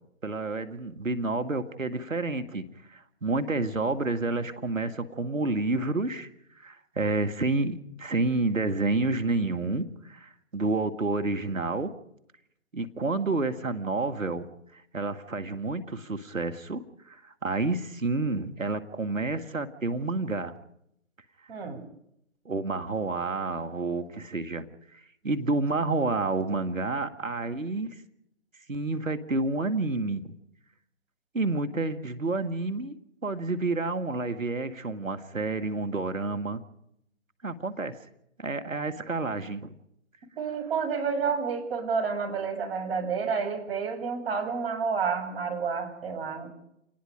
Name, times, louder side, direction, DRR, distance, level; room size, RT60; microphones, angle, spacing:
voice 1, 0.2-2.6 2.9-6.3 6.6-11.9 12.7-14.5 14.7-20.5 22.5-24.6 25.2-28.0 28.7-30.3 31.3-33.0 33.2-36.6 37.4-38.0 38.4-39.8, right 3 dB, 85° right, 7 dB, 2.2 m, -29 dB
voice 2, 21.5-21.8 40.4-46.5, right 5 dB, 50° right, 4 dB, 7.6 m, -30 dB
27.5 x 20.0 x 5.2 m, 0.76 s
figure-of-eight pair, 140°, 39 cm